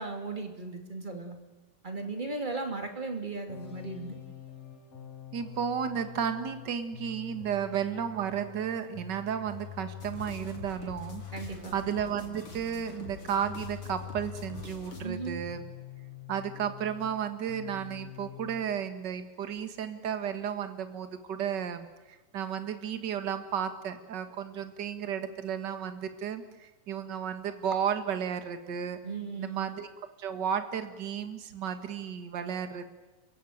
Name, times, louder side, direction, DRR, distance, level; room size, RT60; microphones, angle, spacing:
voice 1, 0.0-1.4 1.8-4.2 11.3-11.7 15.0-15.4 29.0-29.7, right 3 dB, 15° right, 5 dB, 2.3 m, -36 dB
sound 1, 3.5-17.2 17.5-18.7, left 8 dB, 75° left, 4.7 m, -46 dB
voice 2, 5.3-15.6 16.3-21.9 22.3-29.0 29.4-29.9 30.2-32.9, right 8 dB, 45° right, 9 dB, 1.6 m, -33 dB
sound 2, 10.0-15.1, left 2 dB, 40° left, 3.7 m, -46 dB
29.5 x 16.0 x 9.4 m, 1.2 s
omnidirectional pair, 4.0 m